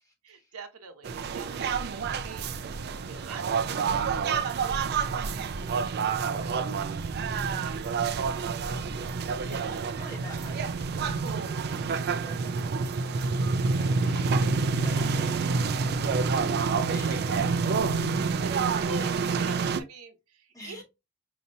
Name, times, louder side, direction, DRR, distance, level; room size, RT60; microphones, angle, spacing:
voice 1, 0.2-2.5 3.0-9.0 9.6-10.0 14.3-14.6 16.8-20.8, right 3 dB, 85° right, 0.8 m, -46 dB
sound 1, 1.0-19.8, right 5 dB, 50° right, 0.4 m, -28 dB
voice 2, 2.1-2.6 9.4-17.4 20.5-20.8, right 1 dB, 15° left, 1.9 m, -49 dB
5.2 x 2.8 x 2.6 m
head